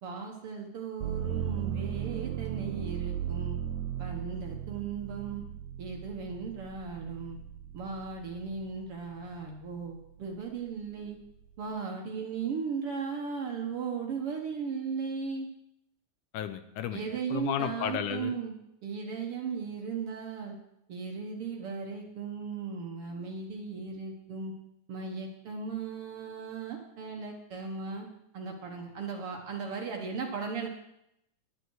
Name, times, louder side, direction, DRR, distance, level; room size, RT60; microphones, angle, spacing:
voice 1, 0.0-3.6 4.0-5.4 5.8-7.4 7.7-11.2 11.6-15.5 16.9-18.5 18.8-20.6 20.9-24.5 24.9-28.1 28.3-30.7, right 5 dB, 55° right, 2 dB, 1.8 m, -37 dB
sound 1, 1.0-8.8 9.3-10.1, right 10 dB, 75° right, 2.0 m, -37 dB
voice 2, 16.3-17.0 17.3-18.3, left 10 dB, 85° left, 10 dB, 2.2 m, -33 dB
11.0 x 10.5 x 4.7 m, 0.81 s
omnidirectional pair, 3.6 m